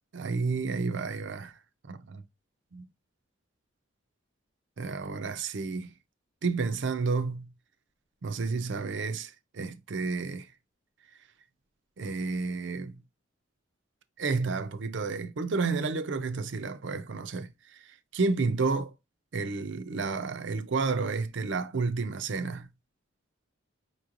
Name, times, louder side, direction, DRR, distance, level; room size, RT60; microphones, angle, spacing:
voice 1, 0.1-1.5 1.9-2.2 2.7-2.8 4.8-5.9 6.4-7.5 8.2-10.5 12.0-13.0 14.2-18.9 19.3-22.7, right 4 dB, 65° right, 0.5 m, -31 dB
5.4 x 3.1 x 2.5 m
head